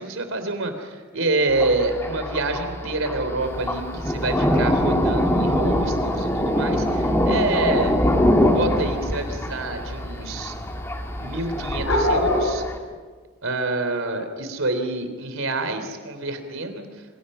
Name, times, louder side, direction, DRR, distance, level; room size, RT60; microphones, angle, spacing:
voice 1, 0.0-8.0 8.5-10.5 11.2-12.6 13.4-17.1, right 2 dB, 85° right, 8 dB, 3.6 m, -27 dB
Thunder, 1.5-12.8, left 1 dB, 10° left, 1.9 m, -24 dB
sound 1, 3.4-12.5, left 1 dB, 75° left, 5.0 m, -31 dB
27.5 x 26.0 x 5.7 m, 1.5 s
head